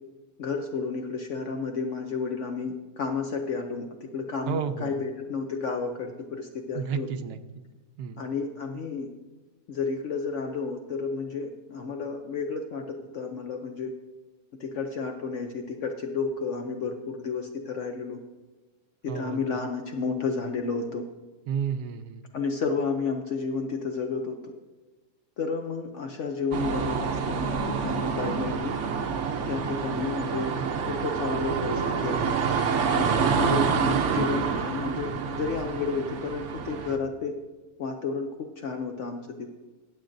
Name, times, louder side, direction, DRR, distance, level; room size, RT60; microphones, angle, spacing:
voice 1, 0.4-7.1 8.2-9.1 9.7-13.9 14.6-18.2 19.0-21.0 22.3-24.5 25.4-28.7 29.5-30.5 30.9-32.4 33.0-37.4 37.8-39.5, left 4 dB, 60° left, 4 dB, 0.8 m, -31 dB
voice 2, 4.5-5.0 6.7-7.6 8.0-8.2 19.1-19.4 21.5-22.3 33.1-33.7, right 7 dB, 80° right, 9 dB, 1.2 m, -32 dB
sound 1, 26.5-37.0, right 6 dB, 55° right, 0.9 m, -27 dB
21.5 x 7.4 x 2.6 m, 1.2 s
omnidirectional pair, 1.8 m